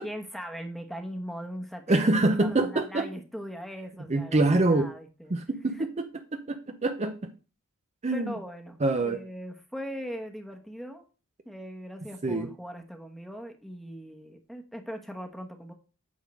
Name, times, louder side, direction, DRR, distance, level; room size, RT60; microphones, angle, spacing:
voice 1, 0.0-5.3 5.7-5.9 8.1-11.0 11.4-15.7, equal, ahead, 4 dB, 1.1 m, -40 dB
voice 2, 1.9-3.1 4.1-4.9 5.3-6.0 6.3-7.3 8.0-8.3 8.8-9.2 12.2-12.5, right 2 dB, 30° right, 7 dB, 0.6 m, -25 dB
8.6 x 3.7 x 6.3 m, 0.35 s
head